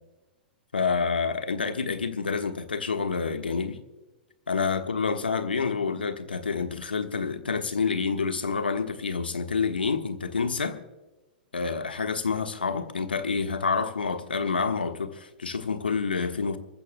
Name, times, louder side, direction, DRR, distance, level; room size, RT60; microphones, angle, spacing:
voice 1, 0.7-3.8 4.5-10.8 11.5-16.6, left 5 dB, 85° left, 1.3 m, -28 dB
29.5 x 14.5 x 2.2 m
figure-of-eight pair, 100°, 5 cm